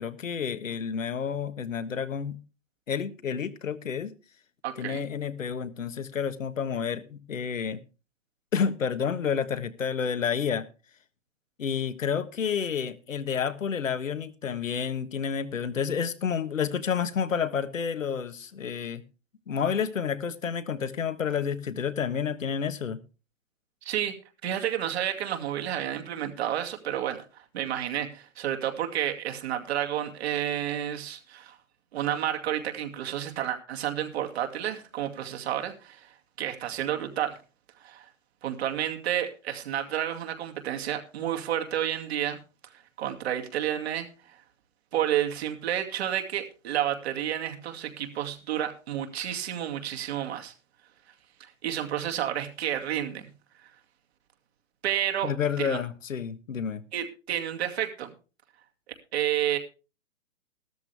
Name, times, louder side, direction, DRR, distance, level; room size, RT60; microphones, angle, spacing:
voice 1, 0.0-2.4 2.9-4.1 4.8-7.8 8.5-10.6 11.6-19.0 19.5-23.0 55.2-56.8, left 7 dB, 75° left, 1.4 m, -30 dB
voice 2, 4.6-5.0 23.8-24.1 24.4-31.6 31.9-37.4 37.8-38.1 38.4-42.4 43.0-44.1 44.9-50.5 51.4-53.3 54.8-55.3 55.6-55.8 56.9-58.1 59.1-59.6, right 11 dB, 55° right, 2.5 m, -30 dB
14.5 x 13.0 x 3.4 m
hypercardioid pair, 130°, 39 cm